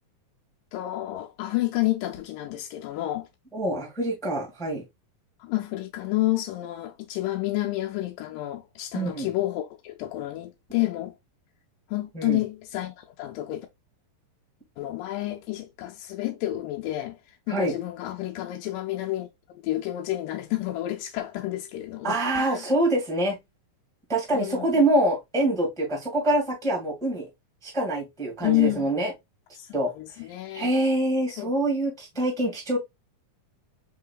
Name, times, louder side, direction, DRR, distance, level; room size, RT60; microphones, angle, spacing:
voice 1, 0.7-3.3 5.4-11.1 11.9-13.7 14.8-22.6 24.3-24.8 28.4-28.9 29.6-30.7 31.3-31.5, left 16 dB, 85° left, 2.3 m, -30 dB
voice 2, 3.5-4.8 8.9-9.3 12.1-12.4 17.5-17.7 22.0-23.3 24.1-27.2 27.6-29.1 29.7-29.9 30.5-32.8, right 1 dB, ahead, 0.9 m, -25 dB
4.8 x 3.8 x 2.3 m
omnidirectional pair, 3.8 m